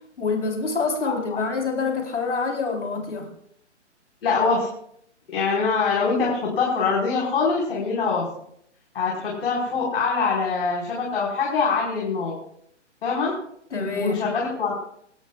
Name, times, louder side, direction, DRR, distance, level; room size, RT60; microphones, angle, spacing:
voice 1, 0.2-3.3 13.7-14.3, left 4 dB, 70° left, 1 dB, 4.3 m, -26 dB
voice 2, 1.0-1.4 4.2-4.7 5.3-8.3 8.9-12.3 13.0-13.3 14.0-14.7, left 4 dB, 55° left, -4 dB, 5.2 m, -24 dB
27.5 x 12.5 x 2.5 m, 0.70 s
figure-of-eight pair, 135°, 36 cm